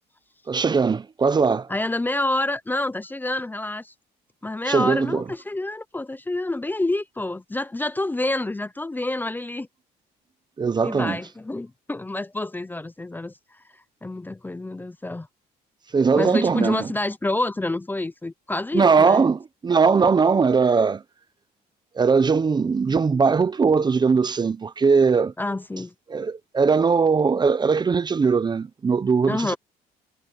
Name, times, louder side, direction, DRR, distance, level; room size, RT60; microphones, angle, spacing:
voice 1, 0.5-1.7 4.7-5.2 10.6-11.2 15.9-16.9 18.7-21.0 22.0-25.3 26.1-29.6, right 5 dB, 25° right, 0.8 m, -20 dB
voice 2, 1.7-3.9 4.4-9.7 10.8-13.3 14.0-15.3 16.2-19.2 25.4-25.9 29.3-29.6, left 2 dB, 10° left, 0.8 m, -28 dB
cardioid pair, 110°, 17 cm